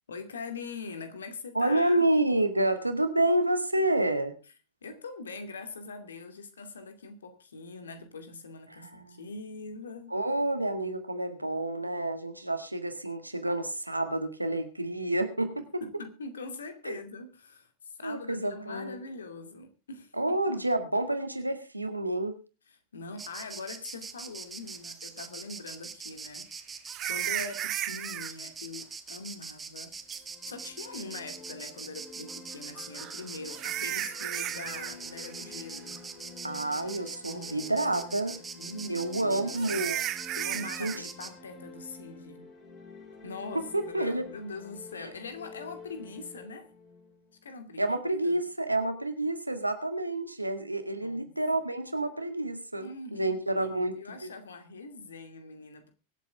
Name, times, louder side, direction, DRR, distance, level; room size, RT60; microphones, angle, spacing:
voice 1, 0.1-2.1 4.8-10.2 15.8-20.6 22.7-30.2 30.4-36.0 37.2-37.7 38.2-39.8 40.3-42.5 43.2-46.7 47.4-48.4 51.0-51.3 52.8-55.9, left 3 dB, 70° left, 2.4 m, -43 dB
voice 2, 1.6-4.3 8.8-9.2 10.1-15.5 16.8-17.0 18.0-19.0 20.2-22.4 36.4-38.4 38.9-40.0 40.8-40.9 43.7-44.3 45.0-45.1 47.8-53.9 54.2-54.3, right 1 dB, 85° right, 2.0 m, -29 dB
Insect, 23.2-41.3, right 5 dB, 15° right, 1.9 m, -42 dB
sound 1, 25.0-25.1 26.9-28.3 30.1-30.2 32.8-34.9 35.2-35.5 36.0-36.1 36.6-36.7 39.5-41.0, right 13 dB, 35° right, 0.9 m, -34 dB
sound 2, 30.0-47.9, left 4 dB, 25° left, 6.4 m, -49 dB
24.0 x 8.3 x 3.5 m
figure-of-eight pair, 90°, 0 cm